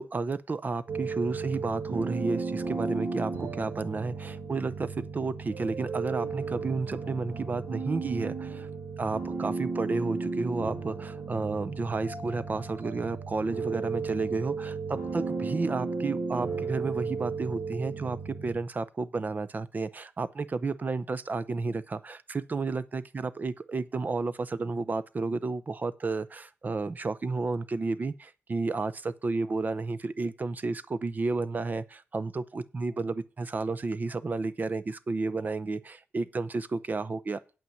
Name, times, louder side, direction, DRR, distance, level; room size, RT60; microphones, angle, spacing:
voice 1, 0.0-8.7 9.0-37.4, right 3 dB, 40° right, 0.7 m, -32 dB
sound 1, 0.9-18.6, right 4 dB, 65° right, 2.0 m, -34 dB
8.8 x 5.7 x 7.8 m
wide cardioid pair, 100°, 5 cm